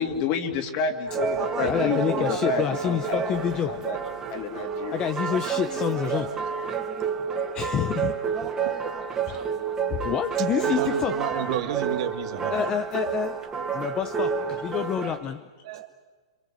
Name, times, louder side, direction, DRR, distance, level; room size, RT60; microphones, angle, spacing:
voice 1, 0.0-3.2 3.7-4.0 4.3-5.0, left 5 dB, 40° left, 4 dB, 3.1 m, -29 dB
sound 1, 1.1-15.2, right 6 dB, 15° right, 2.3 m, -29 dB
voice 2, 1.6-3.8 4.9-6.4 7.5-8.5 9.3-9.4 9.9-11.3 12.5-13.4 13.7-15.5, left 9 dB, 25° left, 9 dB, 0.8 m, -28 dB
voice 3, 10.6-12.5 15.6-15.9, right 11 dB, 55° right, 7 dB, 2.0 m, -31 dB
27.0 x 25.0 x 7.9 m, 1.4 s
hypercardioid pair, 150°, 3 cm